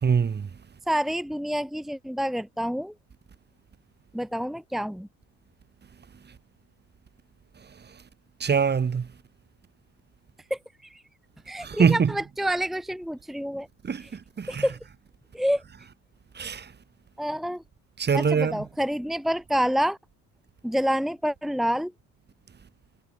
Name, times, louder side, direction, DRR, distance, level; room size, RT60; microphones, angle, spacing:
voice 1, 0.0-0.5 7.6-8.0 8.4-9.1 11.6-12.1 13.8-14.7 16.3-16.7 18.0-18.6, right 6 dB, 25° right, 1.8 m, -24 dB
voice 2, 0.9-2.9 4.1-5.1 10.5-11.0 11.5-13.7 14.5-14.8 15.3-15.6 17.2-17.6 18.1-20.0 20.6-21.9, equal, ahead, 1.1 m, -28 dB
cardioid pair, 120°, 37 cm